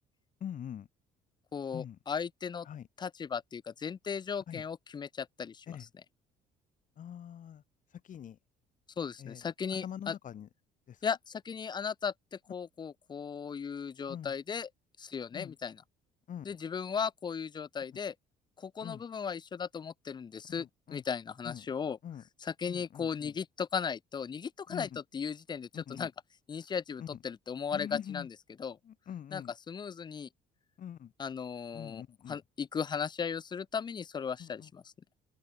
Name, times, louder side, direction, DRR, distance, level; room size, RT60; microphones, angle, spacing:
voice 1, 0.4-0.9 1.7-2.0 2.6-2.9 4.5-4.6 5.7-5.9 7.0-7.6 7.9-8.4 9.2-10.5 10.9-11.0 14.1-14.3 15.3-15.6 16.3-16.6 18.8-19.0 20.5-21.0 21.4-21.7 22.0-22.2 22.7-23.3 24.7-25.0 25.7-26.1 27.0-27.2 27.7-28.3 28.8-29.5 30.8-31.1 31.7-32.4 34.4-34.7, left 9 dB, 50° left, 2.7 m, -44 dB
voice 2, 1.5-2.7 3.0-5.7 9.0-10.1 11.0-14.7 15.0-15.7 16.4-18.1 18.6-22.0 22.4-24.9 25.1-26.1 26.5-28.3 28.6-28.8 29.3-30.3 31.2-32.0 32.3-34.8, left 6 dB, 25° left, 0.5 m, -36 dB
open air
cardioid pair, 110°, 17 cm